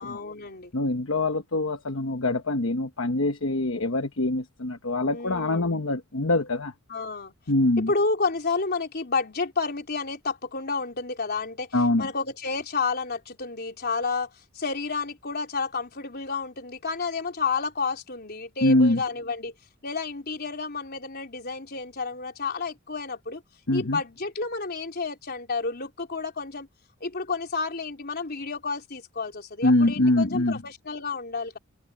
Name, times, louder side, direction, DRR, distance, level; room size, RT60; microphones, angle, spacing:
voice 1, 0.0-0.7 5.1-5.8 6.9-7.3 7.9-11.7 12.0-14.3 14.5-19.5 19.8-23.4 23.7-26.7 27.0-31.6, left 4 dB, 50° left, 3.8 m, -30 dB
voice 2, 0.7-6.7 7.5-7.9 11.7-12.1 18.6-19.0 23.7-24.0 29.6-30.6, left 2 dB, 65° left, 1.2 m, -24 dB
head